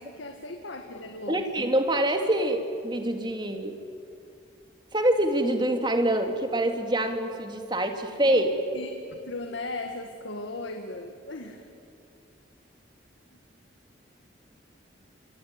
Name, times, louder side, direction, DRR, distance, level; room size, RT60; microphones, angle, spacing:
voice 1, 0.0-1.7 8.2-8.9 9.2-11.7 13.3-13.4, left 2 dB, 85° left, 5 dB, 1.9 m, -37 dB
voice 2, 1.3-3.8 4.9-8.5, right 1 dB, 25° right, 5 dB, 2.4 m, -25 dB
25.5 x 24.5 x 9.7 m, 2.5 s
head